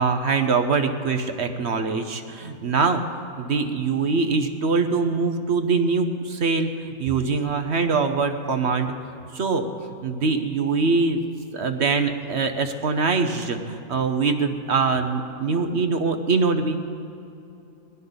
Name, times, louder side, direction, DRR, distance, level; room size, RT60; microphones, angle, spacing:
voice 1, 0.0-3.0 3.4-8.9 9.3-9.7 10.0-11.2 11.5-16.8, right 4 dB, 50° right, 7 dB, 1.1 m, -23 dB
22.0 x 16.5 x 4.0 m, 2.8 s
omnidirectional pair, 1.5 m